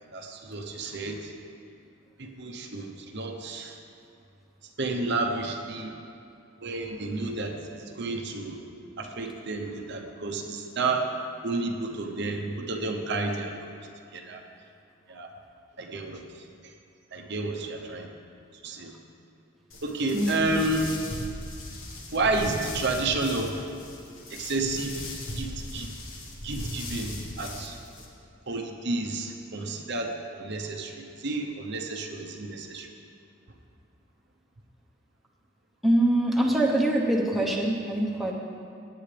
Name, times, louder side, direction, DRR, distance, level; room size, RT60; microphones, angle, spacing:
voice 1, 0.1-1.3 2.2-3.8 4.8-5.9 6.6-8.6 9.0-11.1 11.4-13.8 14.1-14.4 15.1-15.3 15.8-16.2 17.1-18.1 18.6-18.9 19.8-20.9 22.1-23.6 24.3-25.1 25.3-25.9 26.4-27.7 28.5-32.9, right 2 dB, 55° right, 3 dB, 0.9 m, -31 dB
sound 1, 19.7-28.1, left 1 dB, 70° left, 1.6 m, -39 dB
voice 2, 20.1-20.5 35.8-38.3, right 1 dB, ahead, -3 dB, 1.0 m, -24 dB
17.5 x 9.3 x 3.4 m, 2.5 s
head